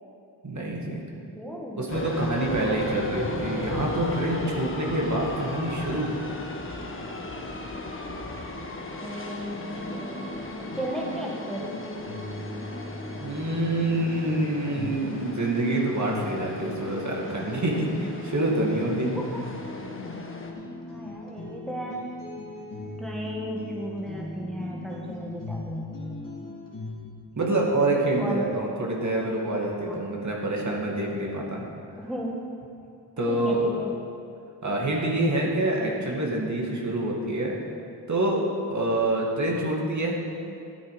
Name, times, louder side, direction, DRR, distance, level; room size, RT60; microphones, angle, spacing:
voice 1, 0.4-1.0 1.8-6.2 13.2-19.2 27.4-31.7 33.2-33.7 34.6-37.6 38.1-40.2, right 1 dB, 40° right, -2 dB, 2.4 m, -26 dB
voice 2, 1.3-1.8 9.0-11.8 19.1-19.4 20.8-22.1 23.0-26.3 28.2-28.4 29.8-30.0 32.0-32.4 33.3-34.0, equal, ahead, -2 dB, 1.6 m, -35 dB
sound 1, 1.9-20.5, left 1 dB, 30° left, 1.5 m, -36 dB
sound 2, 9.5-27.1, left 2 dB, 45° left, 2.8 m, -39 dB
12.5 x 8.5 x 5.1 m, 2.6 s
cardioid pair, 60°, 43 cm